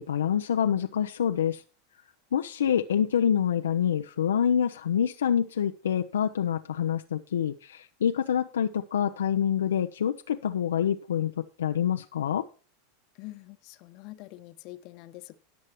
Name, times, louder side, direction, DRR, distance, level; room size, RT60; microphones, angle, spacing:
voice 1, 0.0-1.6 2.3-11.3 11.6-12.4, left 9 dB, 75° left, 0.6 m, -26 dB
voice 2, 13.1-15.4, left 18 dB, 50° left, 1.0 m, -45 dB
18.0 x 6.5 x 3.0 m
hypercardioid pair, 90°, 0 cm